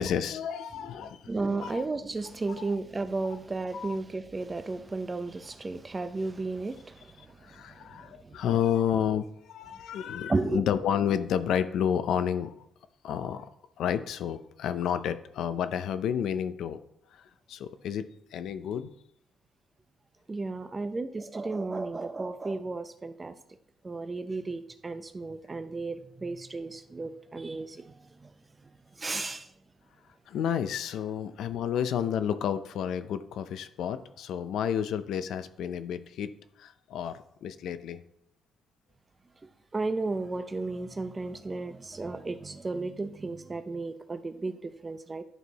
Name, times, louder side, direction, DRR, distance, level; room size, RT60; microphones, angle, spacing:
voice 1, 0.0-1.8 2.6-2.7 3.2-3.4 3.7-4.0 7.4-12.5 13.0-13.5 13.8-16.8 17.1-18.9 29.2-29.4 30.3-36.3 36.6-38.0, left 9 dB, 80° left, 0.5 m, -31 dB
voice 2, 1.3-7.3 7.5-7.6 8.0-8.4 10.3-10.6 20.3-23.3 23.8-27.9 28.2-28.3 29.0-29.5 39.7-45.2, right 3 dB, 25° right, 0.7 m, -33 dB
11.0 x 4.5 x 4.0 m
cardioid pair, 90°, 0 cm